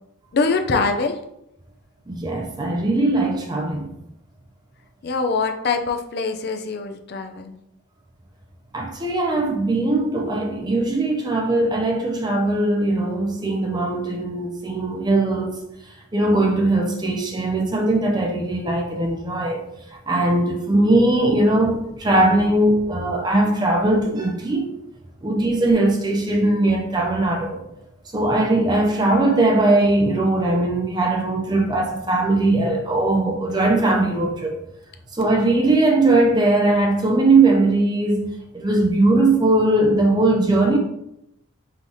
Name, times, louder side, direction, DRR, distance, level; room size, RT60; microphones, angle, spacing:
voice 1, 0.3-1.2 5.0-7.5, left 4 dB, 50° left, 0.4 m, -23 dB
voice 2, 2.1-3.9 8.7-15.6 16.1-19.7 20.1-24.7 25.2-27.6 28.1-34.6 35.1-40.8, right 2 dB, 20° right, 0.4 m, -20 dB
5.5 x 2.7 x 3.1 m
head